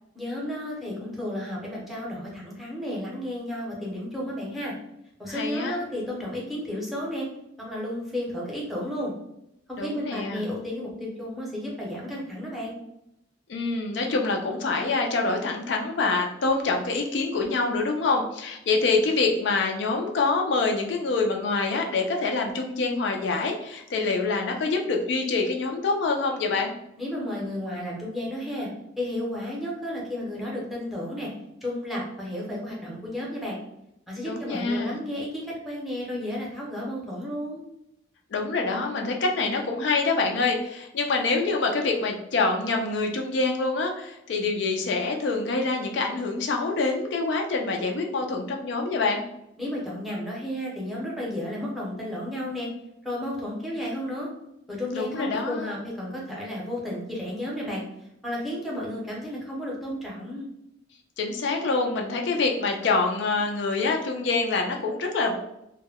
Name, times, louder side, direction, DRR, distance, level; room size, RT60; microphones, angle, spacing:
voice 1, 0.1-4.7 5.2-7.3 7.6-9.1 9.7-12.7 27.0-28.7 29.0-31.3 31.6-33.6 34.1-37.6 49.6-52.7 53.0-54.3 54.7-57.8 58.2-60.5, left 1 dB, ahead, -4 dB, 0.7 m, -32 dB
voice 2, 5.3-5.8 9.8-10.5 13.5-26.7 34.3-35.0 38.3-49.2 54.9-55.7 61.2-65.4, left 3 dB, 60° left, 2 dB, 0.4 m, -26 dB
2.1 x 2.1 x 3.4 m, 0.81 s
head